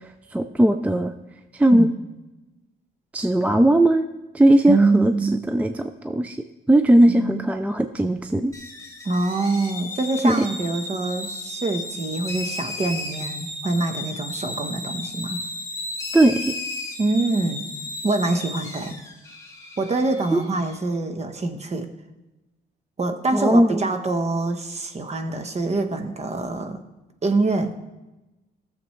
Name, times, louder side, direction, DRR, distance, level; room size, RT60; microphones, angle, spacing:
voice 1, 0.3-1.1 1.5-1.9 3.1-4.1 4.3-5.1 5.5-6.4 6.7-8.5 10.2-10.4 16.1-16.5 20.3-20.4 23.3-23.9, right 1 dB, 5° right, 8 dB, 0.4 m, -18 dB
voice 2, 4.7-5.4 7.1-7.4 9.0-15.4 17.0-17.7 18.0-19.0 19.8-21.9 23.0-26.8 27.2-27.7, right 3 dB, 35° right, 7 dB, 1.1 m, -25 dB
sound 1, 8.5-20.8, left 2 dB, 15° left, 1.8 m, -34 dB
15.5 x 7.0 x 3.2 m, 1.1 s
cardioid pair, 90°, 20 cm